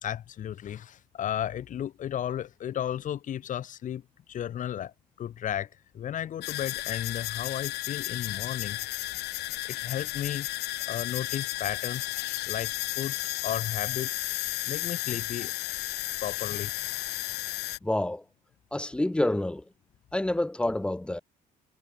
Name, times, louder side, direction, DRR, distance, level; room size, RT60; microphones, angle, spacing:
voice 1, 0.0-4.0 4.3-5.7 5.9-8.8 9.7-10.5 10.9-12.1 12.5-13.2 13.4-14.2 14.7-15.5 16.2-16.7, left 10 dB, 50° left, 1.0 m, -34 dB
sound 1, 6.4-17.8, left 18 dB, 75° left, 0.5 m, -33 dB
voice 2, 17.8-18.2 18.7-19.6 20.1-21.2, left 1 dB, 5° left, 0.5 m, -28 dB
cardioid pair, 110°, 17 cm